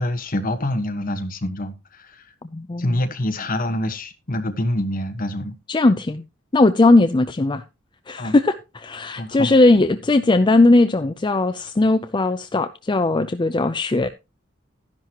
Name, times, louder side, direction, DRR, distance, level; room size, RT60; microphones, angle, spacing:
voice 1, 0.0-2.2 2.8-5.5 8.2-8.3 9.2-9.6, left 1 dB, 45° left, 1.3 m, -26 dB
voice 2, 2.5-3.0 5.7-6.2 6.5-7.6 8.1-14.1, left 2 dB, 25° left, 0.5 m, -18 dB
12.5 x 10.5 x 3.0 m
head